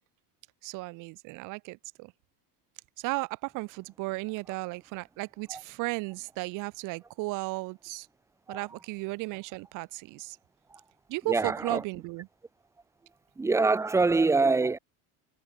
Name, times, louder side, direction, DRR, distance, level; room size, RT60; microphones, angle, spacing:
voice 1, 0.6-2.1 3.0-8.1 8.5-10.4 11.1-12.3, right 23 dB, 50° right, 2.0 m, -35 dB
voice 2, 11.3-11.8 13.4-14.8, right 3 dB, 5° right, 1.2 m, -24 dB
cardioid pair, 175°, 41 cm